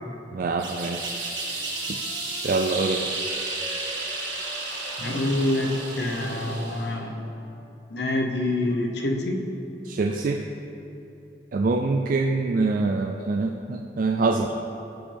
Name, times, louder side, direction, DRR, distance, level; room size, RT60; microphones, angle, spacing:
voice 1, 0.3-1.2 2.4-3.1 9.8-10.4 11.5-14.5, right 3 dB, 50° right, 3 dB, 0.3 m, -25 dB
sound 1, 0.6-6.9, right 2 dB, 90° right, 1.7 m, -32 dB
Wind instrument woodwind instrument, 1.3-7.6, right 1 dB, 5° left, 1.9 m, -46 dB
voice 2, 5.0-7.3 7.9-9.4, left 1 dB, 70° left, 3 dB, 0.9 m, -26 dB
14.0 x 5.3 x 3.4 m, 3.0 s
head